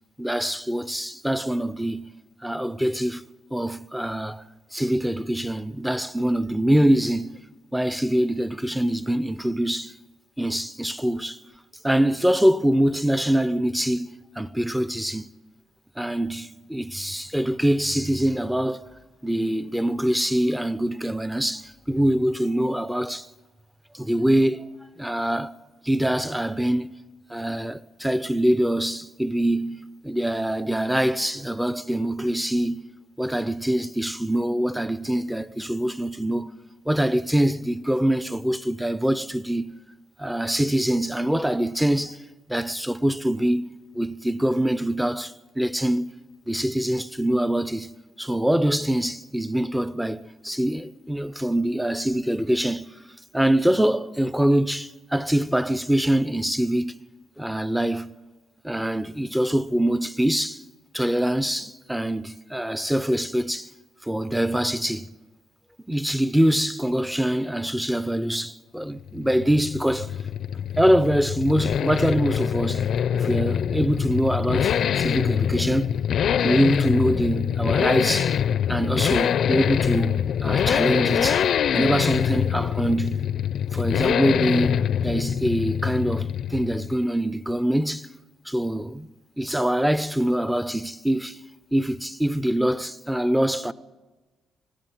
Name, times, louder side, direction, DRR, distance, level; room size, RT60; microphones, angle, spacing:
voice 1, 0.2-2.1 2.4-3.2 3.5-7.4 7.7-9.9 10.4-11.4 11.8-14.1 14.4-15.3 16.0-18.8 19.2-23.3 23.9-24.7 25.0-25.6 25.8-27.0 27.3-32.8 33.2-36.5 36.9-39.7 40.2-42.2 42.5-46.1 46.5-47.9 48.2-52.9 53.3-57.0 57.4-58.1 58.6-60.6 60.9-63.7 64.0-65.1 65.9-70.2 70.8-75.9 76.4-78.4 78.7-83.3 83.7-88.1 88.5-89.1 89.4-91.4 91.7-93.7, right 1 dB, 5° right, 0.7 m, -24 dB
sound 1, 69.0-87.0, left 8 dB, 65° left, 0.6 m, -24 dB
20.0 x 15.5 x 9.2 m
cardioid pair, 90°, 0 cm